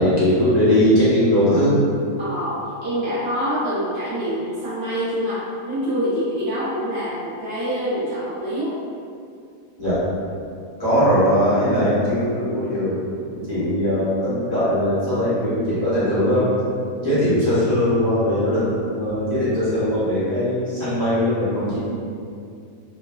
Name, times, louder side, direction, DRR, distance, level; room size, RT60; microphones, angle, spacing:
voice 1, 0.0-1.7 9.8-10.0 10.8-13.0 13.3-16.5 17.0-18.6 19.0-21.8, equal, 35° left, -13 dB, 0.9 m, -20 dB
voice 2, 2.2-8.7 13.5-13.7 21.9-22.0, equal, 55° right, -11 dB, 1.0 m, -26 dB
3.1 x 2.1 x 2.3 m, 2.4 s
omnidirectional pair, 1.5 m